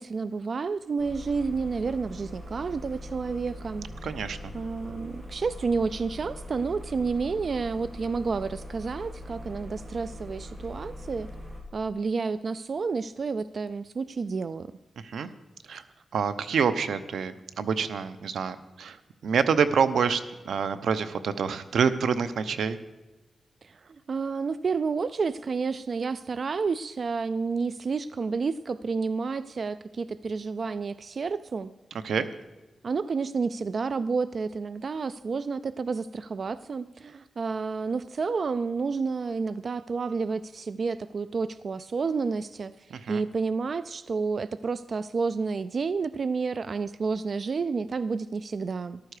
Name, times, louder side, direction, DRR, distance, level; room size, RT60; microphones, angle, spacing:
voice 1, 0.0-3.9 4.5-11.3 11.7-14.7 15.7-15.8 23.6-31.7 32.8-49.0, right 4 dB, 50° right, 15 dB, 0.3 m, -30 dB
sound 1, 1.0-11.6, left 1 dB, 20° right, 2.8 m, -41 dB
voice 2, 4.0-4.5 15.0-15.3 15.7-15.8 16.1-22.8 32.0-32.3 42.9-43.2, right 6 dB, 85° right, 12 dB, 0.7 m, -27 dB
14.0 x 12.0 x 4.9 m, 1.1 s
wide cardioid pair, 115°, 0 cm